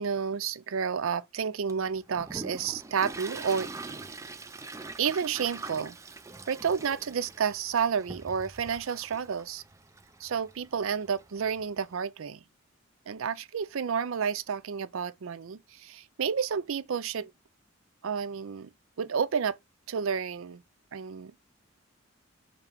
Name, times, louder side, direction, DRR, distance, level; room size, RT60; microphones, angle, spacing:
voice 1, 0.0-3.7 5.0-6.0 6.5-9.6 10.2-12.4 13.1-17.3 18.0-18.7 19.0-19.6 19.9-20.6 20.9-21.3, right 6 dB, 75° right, 0.5 m, -30 dB
Toilet flush, 1.7-11.9, right 3 dB, 15° right, 0.4 m, -44 dB
6.9 x 2.9 x 5.1 m
head